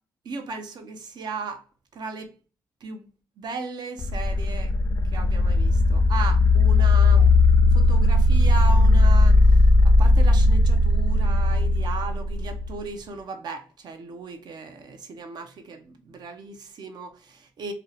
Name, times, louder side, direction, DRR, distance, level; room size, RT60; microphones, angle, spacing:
voice 1, 0.2-1.7 1.9-2.3 2.8-3.1 3.4-4.7 5.1-7.4 7.7-17.7, right 3 dB, 65° right, 0.6 m, -36 dB
sound 1, 4.0-12.8, left 2 dB, 40° left, 0.4 m, -18 dB
2.6 x 2.1 x 3.9 m
cardioid pair, 80°, 8 cm